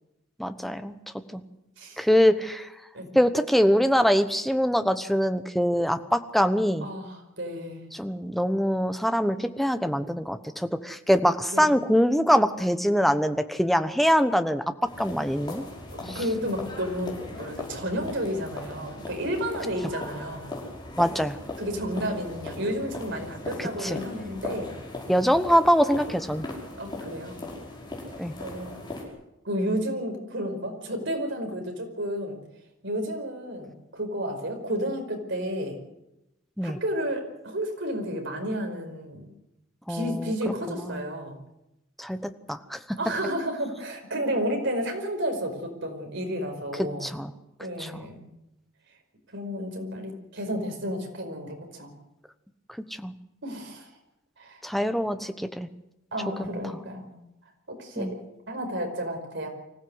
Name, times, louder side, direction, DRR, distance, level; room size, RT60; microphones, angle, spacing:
voice 1, 0.4-1.0 1.3-1.4 2.0-2.7 3.1-6.9 7.9-14.6 15.0-15.6 16.1-16.2 21.0-21.4 23.6-24.0 25.1-26.5 28.2-28.3 36.6-36.8 39.9-41.0 42.0-42.2 42.5-43.0 46.8-47.3 47.8-48.0 53.0-53.1 54.6-55.7 56.5-56.8 58.0-58.1, equal, ahead, 9 dB, 1.0 m, -24 dB
voice 2, 6.8-7.8 11.5-11.7 15.9-20.5 21.6-24.7 26.8-27.4 28.4-28.8 29.4-32.4 32.8-35.8 36.6-39.3 39.9-41.4 43.0-47.1 47.6-48.2 49.3-51.9 53.4-53.9 54.4-54.6 56.1-57.1 57.7-58.1 58.5-59.5, equal, 60° right, 4 dB, 5.0 m, -31 dB
sound 1, 14.8-29.0, left 2 dB, 20° left, 5.5 m, -39 dB
24.5 x 16.0 x 8.0 m, 0.90 s
head